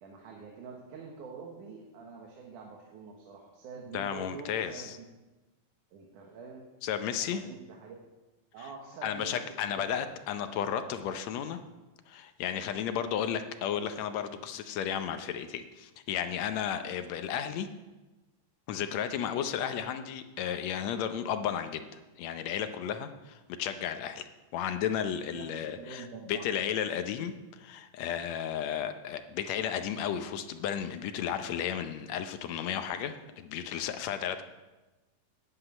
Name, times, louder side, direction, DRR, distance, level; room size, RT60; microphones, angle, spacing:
voice 1, 0.0-5.0 5.9-6.7 7.1-8.0 8.5-9.9 16.8-17.0 25.3-26.7, right 4 dB, 85° right, 0 dB, 2.8 m, -46 dB
voice 2, 3.9-5.0 6.8-7.4 9.0-11.6 12.1-17.7 18.7-21.9 22.2-24.3 24.5-34.4, left 9 dB, 75° left, 9 dB, 1.8 m, -33 dB
9.8 x 7.9 x 8.7 m, 1.1 s
omnidirectional pair, 3.5 m